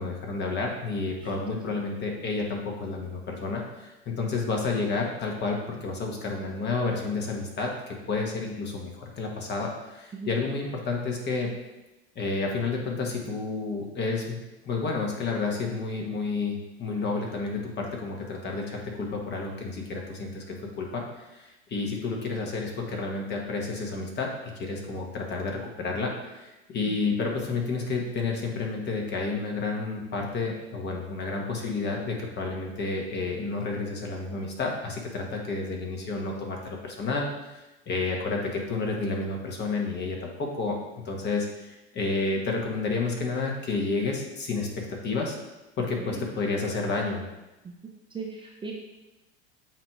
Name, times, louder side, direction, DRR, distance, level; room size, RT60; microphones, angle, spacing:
voice 1, 0.0-11.5 12.1-14.4 14.6-37.3 37.5-40.8 41.0-45.4 45.8-47.2, left 3 dB, 30° left, 0 dB, 1.4 m, -30 dB
voice 2, 48.1-48.7, right 4 dB, 15° right, -1 dB, 0.8 m, -38 dB
7.3 x 2.9 x 4.8 m, 1.0 s
hypercardioid pair, 90°, 34 cm